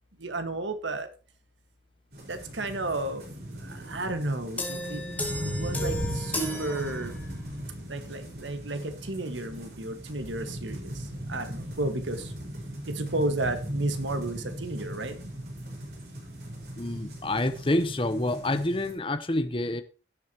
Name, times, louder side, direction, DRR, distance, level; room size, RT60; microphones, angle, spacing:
voice 1, 0.2-1.1 2.2-3.2 3.6-5.1 5.4-7.1 7.9-12.3 12.9-15.3, right 2 dB, 90° right, 1.6 m, -33 dB
sound 1, 2.1-18.9, equal, 60° right, 5.0 m, -38 dB
sound 2, 4.6-7.6, equal, 10° left, 2.4 m, -34 dB
voice 2, 16.8-19.8, left 1 dB, 30° left, 0.8 m, -28 dB
16.5 x 7.8 x 2.9 m
head